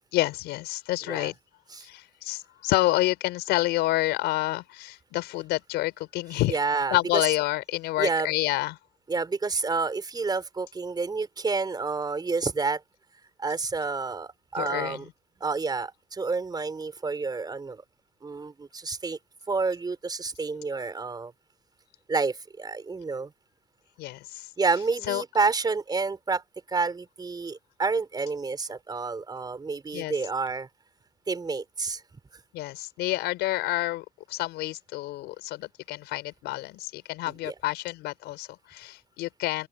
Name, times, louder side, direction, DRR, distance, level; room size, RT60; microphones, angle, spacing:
voice 1, 0.1-1.3 1.8-6.6 6.9-8.7 14.6-15.0 24.0-24.5 25.1-25.2 29.9-30.1 32.5-39.7, left 18 dB, 90° left, 5.2 m, -28 dB
voice 2, 6.5-7.3 8.0-8.3 9.1-12.8 13.4-15.1 15.4-17.8 18.2-19.2 19.5-21.3 22.1-23.3 24.6-26.4 26.7-30.7 31.3-32.0 32.3-32.4 37.3-37.6, right 4 dB, 25° right, 4.5 m, -29 dB
open air
cardioid pair, 110°, 17 cm